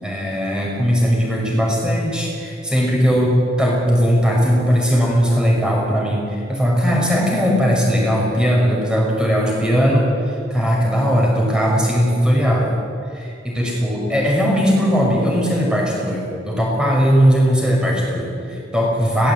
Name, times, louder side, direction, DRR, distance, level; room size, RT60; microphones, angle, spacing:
voice 1, 0.0-12.7 13.1-19.3, equal, 5° right, -2 dB, 5.8 m, -18 dB
22.0 x 18.0 x 9.1 m, 2.5 s
head